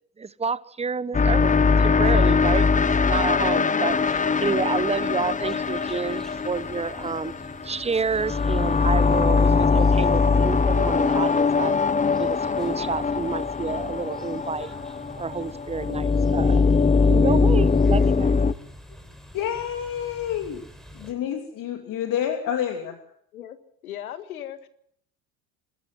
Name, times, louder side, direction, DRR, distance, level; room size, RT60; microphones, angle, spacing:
voice 1, 0.2-1.5 1.8-7.3 7.6-11.8 12.1-14.7 15.2-16.7 17.0-18.4, right 5 dB, 15° right, 1.0 m, -29 dB
sound 1, 1.1-18.5, left 4 dB, 20° left, 1.0 m, -21 dB
sound 2, 3.9-21.1, equal, ahead, 4.5 m, -45 dB
voice 2, 19.3-20.6 20.9-23.0, left 9 dB, 50° left, 2.9 m, -28 dB
voice 3, 23.8-24.7, left 11 dB, 80° left, 1.9 m, -37 dB
26.0 x 13.5 x 7.9 m
hypercardioid pair, 70°, 42 cm